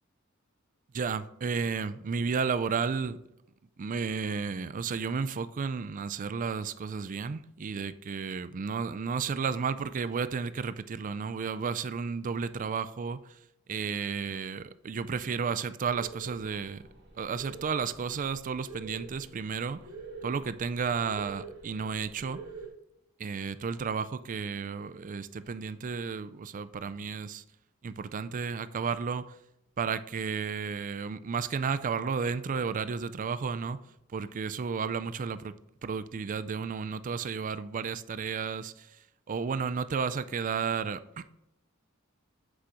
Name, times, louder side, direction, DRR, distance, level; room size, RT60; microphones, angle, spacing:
voice 1, 0.9-3.2 3.8-13.4 13.7-16.8 17.2-19.8 20.2-22.4 23.2-27.4 27.8-29.3 29.8-33.8 34.1-35.5 35.8-38.9 39.3-41.3, right 5 dB, 40° right, 0.4 m, -32 dB
sound 1, 15.8-22.7, right 4 dB, 55° right, 1.6 m, -46 dB
8.1 x 4.9 x 2.9 m
head